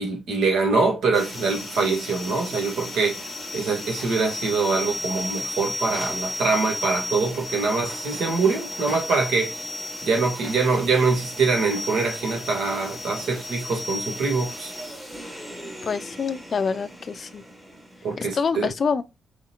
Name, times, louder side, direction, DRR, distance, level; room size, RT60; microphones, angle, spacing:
voice 1, 0.0-3.2 3.5-9.6 10.0-14.7 18.0-18.7, right 4 dB, 75° right, 1.7 m, -24 dB
sound 1, 1.1-18.4, left 2 dB, 15° right, 1.3 m, -34 dB
voice 2, 15.8-17.4 18.2-19.0, left 5 dB, 35° left, 0.4 m, -26 dB
5.0 x 3.7 x 2.9 m
cardioid pair, 160°, 0 cm